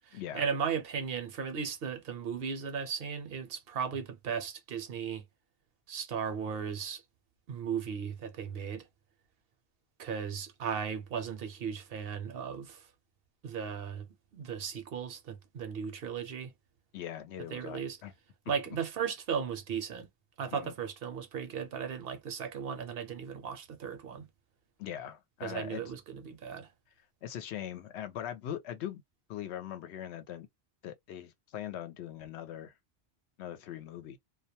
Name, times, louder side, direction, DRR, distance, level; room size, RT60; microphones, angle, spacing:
voice 1, 0.1-5.2 5.9-7.0 7.5-8.8 10.0-12.8 13.4-14.1 14.3-16.5 17.5-18.0 18.5-20.1 20.4-24.2 25.4-26.7, right 7 dB, 65° right, 0.8 m, -36 dB
voice 2, 16.9-18.1 20.5-20.7 24.8-25.8 27.2-29.0 29.3-30.5 30.8-32.7 33.4-34.2, left 10 dB, 80° left, 0.8 m, -41 dB
2.2 x 2.1 x 2.7 m
omnidirectional pair, 1.1 m